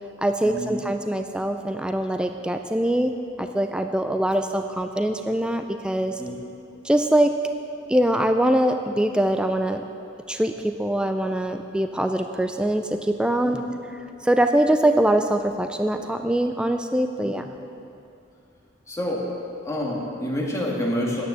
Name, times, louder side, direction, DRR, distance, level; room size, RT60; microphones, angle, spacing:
voice 1, 0.2-3.1 3.4-6.2 6.8-7.3 7.9-9.8 10.3-13.6 14.2-17.4, right 1 dB, 5° right, 6 dB, 0.3 m, -23 dB
voice 2, 18.9-19.3 19.6-21.2, left 1 dB, 15° left, -3 dB, 1.7 m, -28 dB
9.4 x 9.0 x 7.2 m, 2.6 s
head